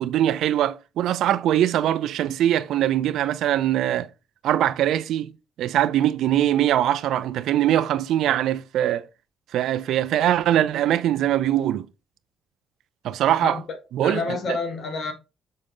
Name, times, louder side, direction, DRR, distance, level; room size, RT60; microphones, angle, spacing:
voice 1, 0.0-4.1 4.4-5.3 5.6-9.1 9.5-11.8 13.0-13.6 13.9-14.2, right 12 dB, 80° right, 0.4 m, -22 dB
voice 2, 13.4-13.8 14.0-15.1, left 4 dB, 60° left, 1.6 m, -29 dB
6.4 x 4.4 x 3.8 m
cardioid pair, 90°, 0 cm